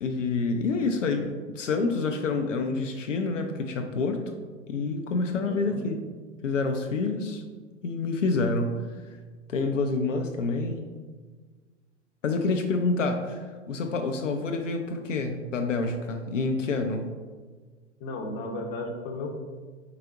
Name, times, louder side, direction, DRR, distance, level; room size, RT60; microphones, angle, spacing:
voice 1, 0.0-4.4 4.7-6.0 6.4-7.4 7.8-8.8 9.5-10.9 12.2-17.1, left 3 dB, 90° left, 5 dB, 0.5 m, -28 dB
voice 2, 5.4-5.8 18.0-19.4, left 2 dB, 35° left, 3 dB, 0.8 m, -34 dB
4.8 x 3.8 x 2.4 m, 1.4 s
figure-of-eight pair, 100°, 36 cm